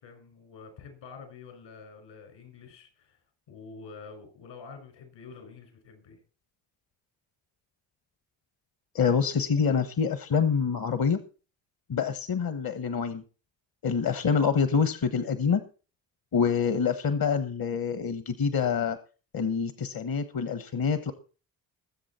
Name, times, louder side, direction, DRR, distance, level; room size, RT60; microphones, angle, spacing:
voice 1, 0.0-3.2 3.5-6.2, left 5 dB, 75° left, 6 dB, 6.0 m, -47 dB
voice 2, 8.9-11.2 11.9-13.2 13.8-15.6 16.3-19.0 19.3-21.1, left 6 dB, 50° left, 11 dB, 1.3 m, -26 dB
20.5 x 7.6 x 4.3 m, 0.36 s
supercardioid pair, 55°, 46 cm